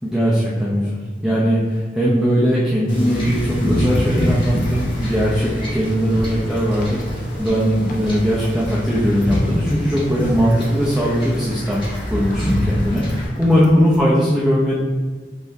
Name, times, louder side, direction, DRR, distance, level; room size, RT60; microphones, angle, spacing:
voice 1, 0.0-14.7, equal, 5° right, -7 dB, 0.6 m, -19 dB
Wind / Ocean / Boat Water vehicle, 2.9-13.2, equal, 30° left, 1.2 m, -25 dB
sound 1, 3.8-14.0, equal, 50° left, 0.8 m, -37 dB
5.6 x 3.4 x 2.7 m, 1.4 s
head